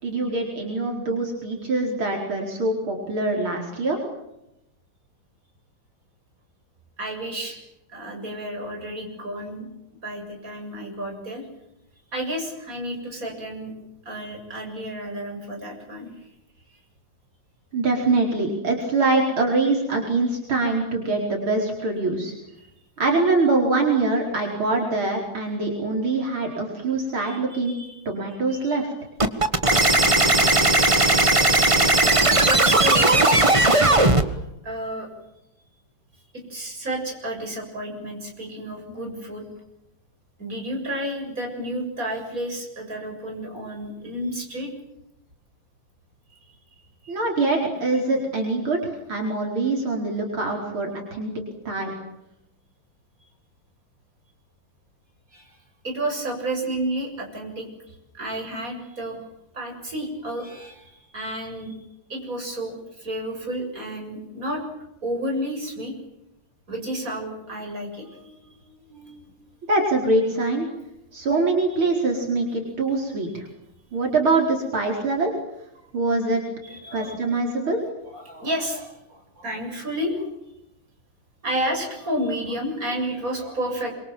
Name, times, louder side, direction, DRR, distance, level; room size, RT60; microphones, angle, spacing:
voice 1, 0.0-4.0 17.7-22.3 23.0-27.8 28.1-28.9 47.1-51.3 51.7-51.9 69.7-70.7 71.1-73.5 73.9-75.3 75.9-76.4 76.9-77.8, right 3 dB, 70° right, 0 dB, 5.4 m, -24 dB
voice 2, 7.0-7.6 7.9-9.7 10.0-11.4 12.1-13.7 14.0-16.1 27.2-28.0 28.5-28.9 32.4-33.5 34.2-35.1 36.5-39.4 40.4-44.7 46.3-46.4 47.0-47.2 55.3-55.5 55.8-59.2 59.5-61.8 62.1-64.6 65.0-65.9 66.7-69.3 76.6-77.8 78.1-80.3 81.4-83.9, right 1 dB, 40° right, 2 dB, 8.0 m, -31 dB
sound 1, 29.2-34.2, right 2 dB, 15° right, 1.5 m, -17 dB
27.5 x 24.5 x 7.6 m, 0.87 s
omnidirectional pair, 2.3 m